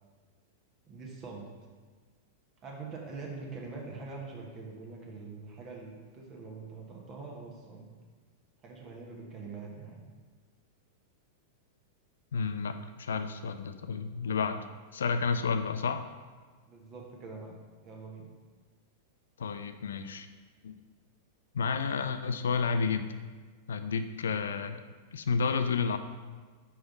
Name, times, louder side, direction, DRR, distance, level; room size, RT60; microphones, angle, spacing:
voice 1, 0.9-1.5 2.6-7.9 8.6-10.0 16.6-18.3, right 4 dB, 30° right, -1 dB, 1.1 m, -44 dB
voice 2, 12.3-14.6 14.9-16.1 19.4-20.3 20.6-20.8 21.5-23.1 23.7-24.8 25.1-26.0, left 5 dB, 65° left, 10 dB, 0.3 m, -31 dB
5.0 x 4.8 x 4.0 m, 1.5 s
figure-of-eight pair, 95°, 0 cm